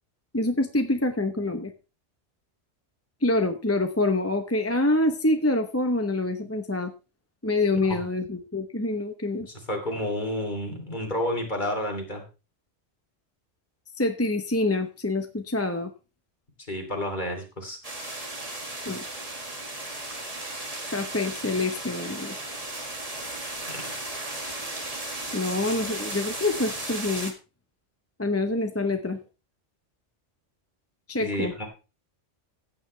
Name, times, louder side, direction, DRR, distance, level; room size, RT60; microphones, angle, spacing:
voice 1, 0.3-1.7 3.2-6.9 7.4-9.5 14.0-15.9 18.9-19.0 20.9-22.3 25.3-27.3 28.2-29.2 31.1-31.5, left 2 dB, 15° left, 6 dB, 0.8 m, -26 dB
voice 2, 9.5-12.2 16.7-17.8 23.6-23.8 31.2-31.7, left 1 dB, 35° left, 3 dB, 3.3 m, -30 dB
sound 1, 17.8-27.3, right 2 dB, 30° right, 2.1 m, -35 dB
15.5 x 9.2 x 3.3 m, 0.31 s
omnidirectional pair, 1.3 m